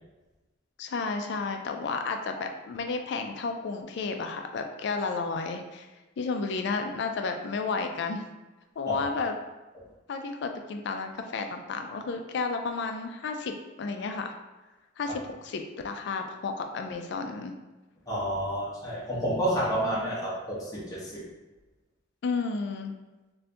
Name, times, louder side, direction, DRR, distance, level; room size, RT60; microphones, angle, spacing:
voice 1, 0.8-5.9 6.2-8.2 8.8-9.4 10.1-14.3 15.0-17.5 22.2-22.9, left 4 dB, 60° left, 5 dB, 0.3 m, -32 dB
voice 2, 18.1-21.1, equal, 20° left, -8 dB, 0.7 m, -29 dB
2.6 x 2.5 x 3.3 m, 1.1 s
head